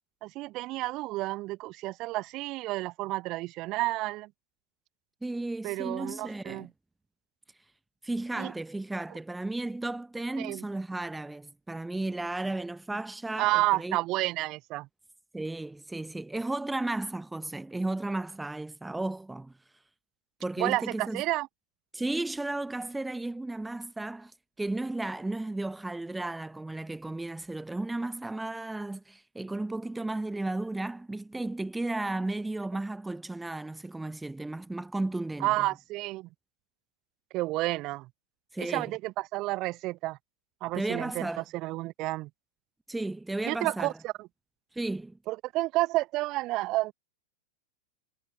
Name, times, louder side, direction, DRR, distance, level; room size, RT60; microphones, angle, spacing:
voice 1, 0.2-4.3 5.6-6.7 8.4-8.5 10.4-10.6 13.4-14.9 20.6-21.5 35.4-36.3 37.3-38.1 38.6-40.2 40.6-42.3 43.4-44.3 45.3-46.9, right 19 dB, 40° right, 0.9 m, -30 dB
voice 2, 5.2-6.7 8.0-14.0 15.3-19.5 20.4-21.2 21.9-24.3 24.6-35.7 38.5-38.9 40.7-41.4 42.9-43.9 44.7-45.2, right 2 dB, 5° right, 0.8 m, -34 dB
figure-of-eight pair, 90°, 0 cm